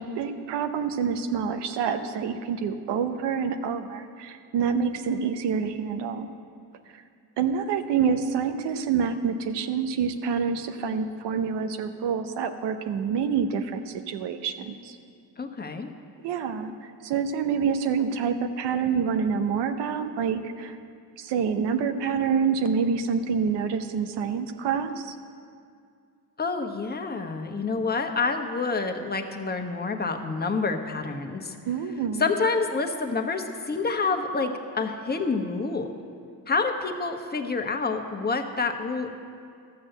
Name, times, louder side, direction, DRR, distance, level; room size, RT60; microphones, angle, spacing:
voice 1, 0.0-6.3 7.4-15.0 16.2-20.8 21.2-25.2 31.6-32.3, right 6 dB, 85° right, 8 dB, 0.8 m, -27 dB
voice 2, 15.4-15.9 26.4-31.5 32.2-35.9 36.5-39.1, left 4 dB, 25° left, 4 dB, 1.1 m, -28 dB
13.0 x 6.3 x 8.0 m, 2.3 s
cardioid pair, 75°, 40 cm